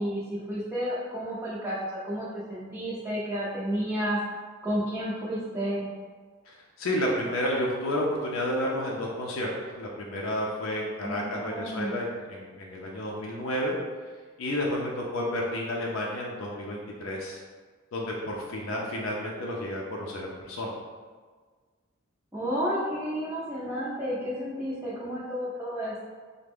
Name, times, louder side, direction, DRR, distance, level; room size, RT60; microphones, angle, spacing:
voice 1, 0.0-4.2 4.6-5.9 11.0-11.9 22.3-26.0, equal, 10° right, -10 dB, 0.4 m, -31 dB
voice 2, 6.5-9.5 9.8-13.8 14.4-17.4 17.9-20.7, left 1 dB, 75° left, -2 dB, 0.5 m, -31 dB
3.3 x 2.1 x 3.4 m, 1.5 s
head